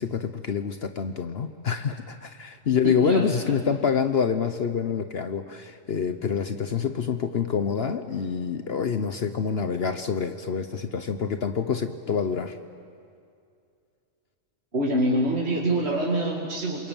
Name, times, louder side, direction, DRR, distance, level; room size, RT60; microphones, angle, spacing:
voice 1, 0.0-12.6, left 6 dB, 55° left, 8 dB, 1.1 m, -27 dB
voice 2, 2.8-3.5 14.7-16.9, right 1 dB, 60° right, -3 dB, 2.8 m, -25 dB
28.0 x 22.5 x 9.0 m, 2.4 s
omnidirectional pair, 1.3 m